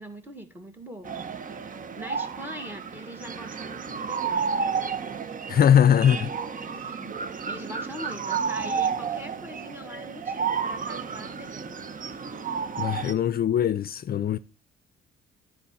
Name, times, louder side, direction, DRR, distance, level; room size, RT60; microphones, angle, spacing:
voice 1, 0.0-1.3 2.0-4.5 5.9-6.5 6.7-11.9, equal, 10° right, 2.1 m, -42 dB
sound 1, 1.0-13.1, right 6 dB, 45° right, 0.9 m, -31 dB
voice 2, 5.5-6.3 12.8-14.4, left 9 dB, 50° left, 0.5 m, -21 dB
10.0 x 4.7 x 7.0 m
cardioid pair, 90°, 20 cm